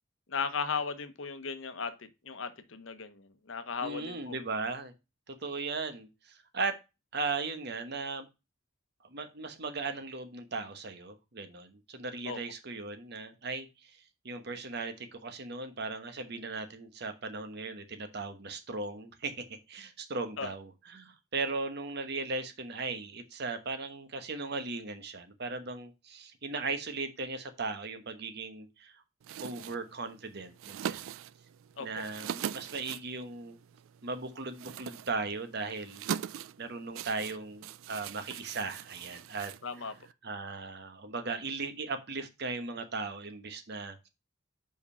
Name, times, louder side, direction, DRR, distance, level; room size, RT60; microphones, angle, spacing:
voice 1, 0.3-4.4 12.3-12.4 20.4-20.5 31.8-32.0 39.6-39.9, left 5 dB, 70° left, 0.9 m, -36 dB
voice 2, 3.8-4.9 5.3-6.7 7.1-8.3 9.1-13.9 14.2-29.0 29.4-31.0 31.8-33.6 34.0-36.0 36.6-39.5 40.2-44.1, right 3 dB, 55° right, 1.1 m, -37 dB
sound 1, 29.2-40.1, right 9 dB, 90° right, 0.3 m, -42 dB
5.2 x 4.9 x 5.5 m
head